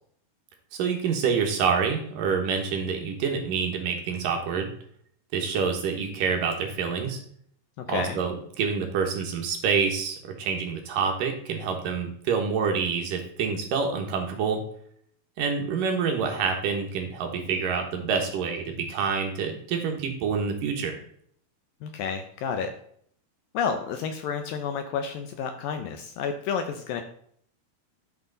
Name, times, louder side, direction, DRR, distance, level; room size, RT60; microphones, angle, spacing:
voice 1, 0.7-4.7 5.3-7.2 7.9-14.6 15.4-21.0, right 6 dB, 65° right, 3 dB, 2.5 m, -27 dB
voice 2, 7.8-8.2 21.8-22.7 23.5-27.0, left 6 dB, 75° left, 7 dB, 2.2 m, -30 dB
11.5 x 6.3 x 3.9 m, 0.63 s
omnidirectional pair, 4.6 m